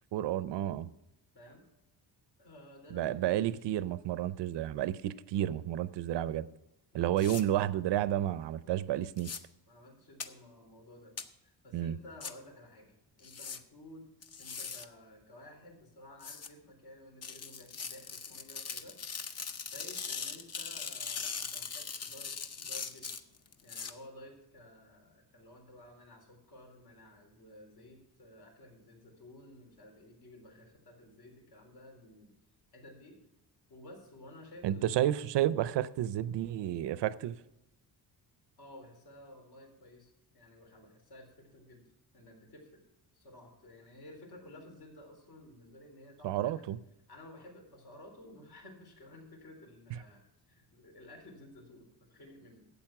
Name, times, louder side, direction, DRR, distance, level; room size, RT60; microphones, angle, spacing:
voice 1, 0.1-0.9 2.9-6.5 6.9-9.3 11.7-12.0 34.6-37.4 46.2-46.8, right 12 dB, 85° right, 0.6 m, -31 dB
voice 2, 2.4-3.6 6.9-7.2 9.7-11.2 11.4-14.1 14.4-19.0 19.2-19.4 19.6-23.1 23.6-32.3 32.7-33.2 33.7-34.9 38.6-41.8 42.1-42.8 43.1-46.5 47.1-52.7, left 1 dB, 60° left, 3.8 m, -54 dB
sound 1, 7.2-7.4 9.2-9.4 10.2-10.3 11.2-11.3 12.2-12.3 13.2-13.6 14.2-14.9 16.2-16.5 17.2-23.9, left 5 dB, 35° left, 0.8 m, -40 dB
12.0 x 8.4 x 5.9 m
wide cardioid pair, 160°, 42 cm